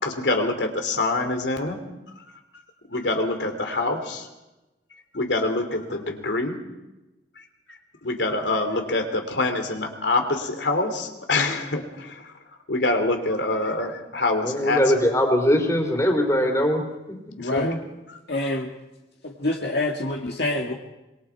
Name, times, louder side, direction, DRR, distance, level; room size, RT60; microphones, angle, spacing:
voice 1, 0.0-1.8 2.9-4.3 5.1-6.6 8.0-12.3 12.7-14.8 17.4-17.8, left 2 dB, 85° left, 5 dB, 3.1 m, -25 dB
voice 2, 14.4-16.8, equal, 20° left, 3 dB, 3.6 m, -21 dB
voice 3, 17.4-17.7 18.3-18.7 19.2-20.7, left 2 dB, 65° left, 0 dB, 2.0 m, -26 dB
26.0 x 23.0 x 4.7 m, 1.0 s
head